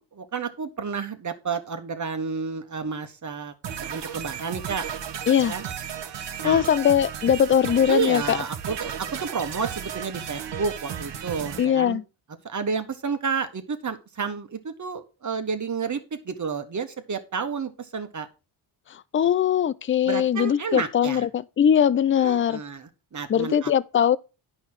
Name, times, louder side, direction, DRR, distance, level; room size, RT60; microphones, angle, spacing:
voice 1, 0.0-3.5 3.8-4.8 5.4-5.6 6.4-6.6 7.9-12.0 12.4-18.3 20.0-21.2 22.2-23.7, right 5 dB, 35° right, 1.4 m, -31 dB
sound 1, 3.6-11.6, right 8 dB, 55° right, 1.2 m, -34 dB
voice 2, 6.4-8.4 11.6-12.0 19.1-22.6 23.3-24.2, left 9 dB, 25° left, 0.4 m, -21 dB
9.6 x 5.6 x 4.7 m
cardioid pair, 70°, 50 cm